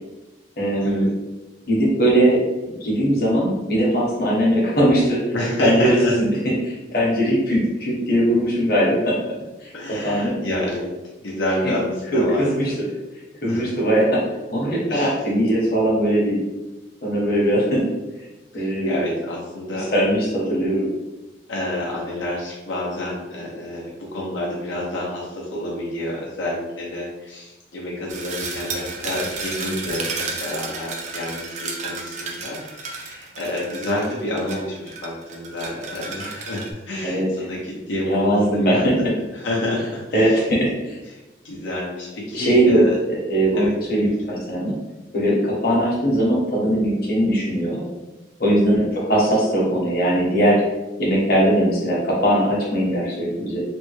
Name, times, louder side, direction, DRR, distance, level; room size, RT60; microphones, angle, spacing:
voice 1, 0.6-1.0 1.7-2.4 2.6-5.2 5.6-6.3 6.6-9.2 9.6-10.4 12.1-12.7 13.4-14.2 14.5-16.4 17.0-17.9 18.5-19.0 19.7-20.9 37.0-37.3 38.0-39.0 40.1-41.0 42.3-42.8 43.0-44.7 45.1-47.8 48.4-50.6 51.0-53.6, right 1 dB, 50° left, -5 dB, 1.0 m, -20 dB
voice 2, 5.3-6.1 6.9-7.0 9.7-10.9 11.2-12.5 13.5-13.7 14.8-15.1 18.5-19.9 21.5-38.9 39.3-40.5 41.1-43.0 43.5-44.4 48.7-48.8, left 1 dB, 85° left, -5 dB, 0.8 m, -28 dB
sound 1, 28.1-36.7, right 4 dB, 40° right, 0.4 m, -32 dB
3.4 x 2.2 x 3.1 m, 1.1 s
head